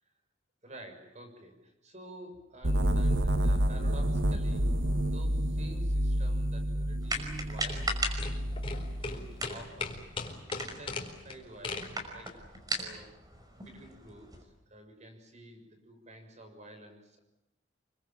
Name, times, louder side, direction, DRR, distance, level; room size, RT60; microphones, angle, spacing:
voice 1, 0.6-8.6 8.9-12.3 12.8-13.2 13.6-17.2, right 1 dB, 40° right, 6 dB, 6.9 m, -51 dB
sound 1, 2.6-9.4, right 1 dB, 80° right, 1.8 m, -29 dB
sound 2, 7.0-14.4, right 1 dB, 20° right, 5.6 m, -39 dB
sound 3, 7.2-12.5, left 3 dB, 30° left, 4.3 m, -40 dB
28.5 x 24.5 x 7.5 m, 0.91 s
head